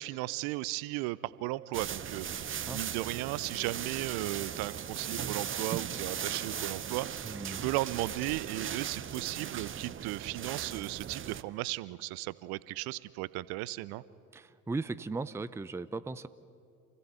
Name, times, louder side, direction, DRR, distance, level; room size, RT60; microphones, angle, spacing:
voice 1, 0.0-14.0, right 18 dB, 55° right, 19 dB, 0.7 m, -36 dB
sound 1, 1.7-11.4, right 8 dB, 30° right, 0.9 m, -38 dB
voice 2, 7.2-7.7 14.3-16.3, right 3 dB, 5° right, 14 dB, 0.6 m, -37 dB
28.0 x 16.0 x 8.1 m, 2.4 s
figure-of-eight pair, 60°, 43 cm